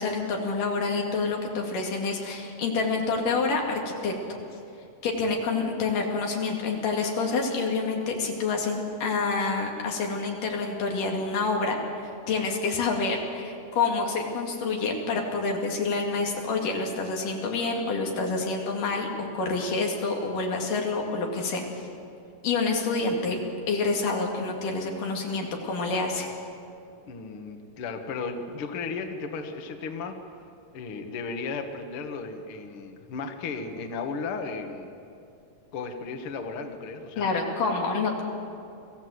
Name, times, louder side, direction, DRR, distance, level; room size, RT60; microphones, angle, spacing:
voice 1, 0.0-4.1 5.0-11.8 12.3-21.9 22.4-23.4 23.7-26.3 37.2-38.2, left 4 dB, 55° left, 0 dB, 3.7 m, -27 dB
voice 2, 27.1-30.1 30.7-34.9 35.7-37.3, left 4 dB, 85° left, 5 dB, 1.2 m, -35 dB
23.5 x 15.0 x 7.9 m, 2.6 s
omnidirectional pair, 4.8 m